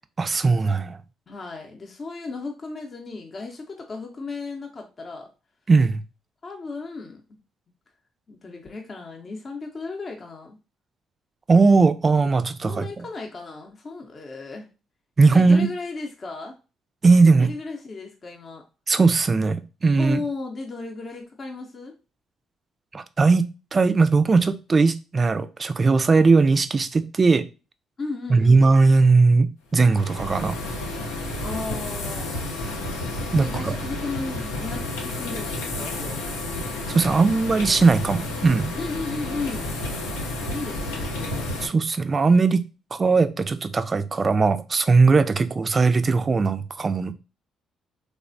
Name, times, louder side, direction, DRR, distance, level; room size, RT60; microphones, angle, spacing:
voice 1, 0.2-1.0 5.7-6.0 11.5-13.0 15.2-15.7 17.0-17.5 18.9-20.2 22.9-27.4 28.3-30.6 33.3-33.7 36.9-38.7 41.6-42.7 42.9-47.1, right 4 dB, 40° right, 0.3 m, -19 dB
voice 2, 1.3-5.3 6.4-7.4 8.3-10.6 12.6-14.7 15.3-16.6 17.4-18.6 20.0-22.0 28.0-28.6 31.4-32.5 33.4-36.2 38.8-39.7 40.5-41.5, left 3 dB, 45° left, 0.6 m, -35 dB
mars hab during dust storm, 29.8-41.7, left 2 dB, 90° left, 0.5 m, -31 dB
3.2 x 2.1 x 2.5 m
hypercardioid pair, 55°, 0 cm